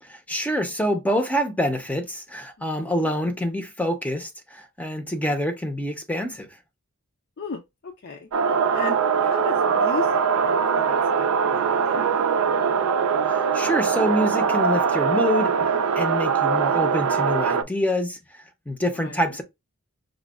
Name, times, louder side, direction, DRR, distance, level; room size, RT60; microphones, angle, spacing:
voice 1, 0.0-6.5 13.2-15.6 16.0-19.4, equal, 5° left, 0.6 m, -26 dB
voice 2, 2.6-2.9 4.8-5.1 7.4-8.3 8.7-12.0 16.5-16.9 18.9-19.2, left 4 dB, 50° left, 0.5 m, -36 dB
sound 1, 8.3-17.6, right 6 dB, 75° right, 0.4 m, -22 dB
5.0 x 2.2 x 2.3 m
head